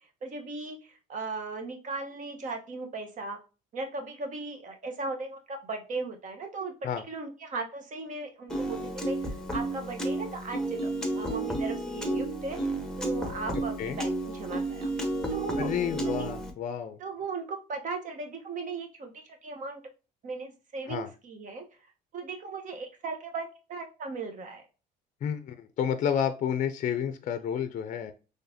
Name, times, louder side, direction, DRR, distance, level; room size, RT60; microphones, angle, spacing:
voice 1, 0.2-3.4 3.7-14.9 15.3-16.2 17.0-19.1 19.4-19.8 20.2-21.6 22.1-24.6, right 3 dB, 50° right, 4 dB, 1.1 m, -37 dB
Piano, 8.5-16.5, right 2 dB, 5° left, 1.0 m, -32 dB
voice 2, 15.6-17.0 20.9-21.1 25.2-28.1, left 8 dB, 50° left, 10 dB, 0.5 m, -30 dB
3.9 x 3.2 x 2.7 m, 0.32 s
cardioid pair, 110°, 17 cm